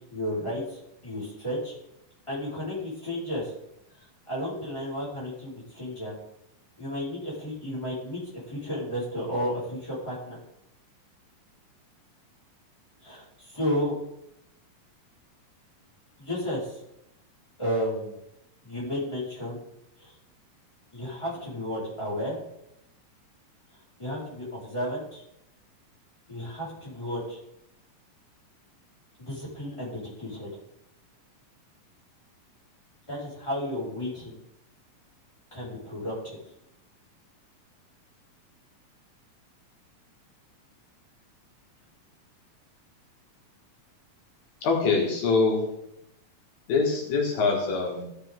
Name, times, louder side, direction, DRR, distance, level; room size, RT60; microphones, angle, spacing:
voice 1, 0.1-1.8 2.3-3.5 4.3-6.2 6.8-10.4 13.0-14.0 16.2-16.7 17.6-18.2 18.6-19.6 20.0-20.1 20.9-22.4 24.0-25.2 26.3-27.4 29.2-30.5 33.1-34.4 35.5-36.1, equal, 10° left, -7 dB, 4.5 m, -32 dB
voice 2, 44.6-45.6 46.7-48.1, left 4 dB, 85° left, -1 dB, 3.9 m, -24 dB
16.0 x 7.1 x 3.7 m, 0.83 s
omnidirectional pair, 4.0 m